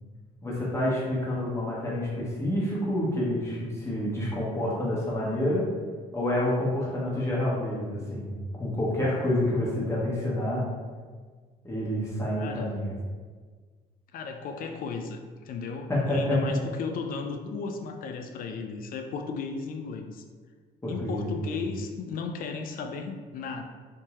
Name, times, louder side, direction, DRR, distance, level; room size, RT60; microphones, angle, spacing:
voice 1, 0.4-5.7 6.1-10.6 11.6-12.9 15.9-16.6 20.8-21.5, left 1 dB, 15° left, -6 dB, 1.1 m, -28 dB
voice 2, 12.4-12.8 14.1-20.2 20.9-23.6, left 5 dB, 55° left, 5 dB, 0.4 m, -35 dB
3.4 x 2.7 x 3.0 m, 1.5 s
cardioid pair, 110°, 17 cm